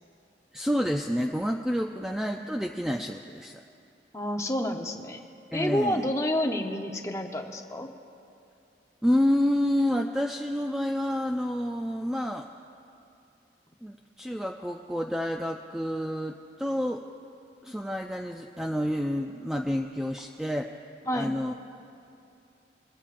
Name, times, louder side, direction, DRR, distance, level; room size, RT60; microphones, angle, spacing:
voice 1, 0.5-3.6 5.5-6.1 9.0-12.5 13.8-17.0 17.6-20.8 21.1-21.5, equal, 5° right, 3 dB, 0.3 m, -29 dB
voice 2, 4.1-5.2 5.5-7.9 21.1-21.3, left 1 dB, 15° left, 3 dB, 0.8 m, -29 dB
22.0 x 15.5 x 2.5 m, 2.7 s
head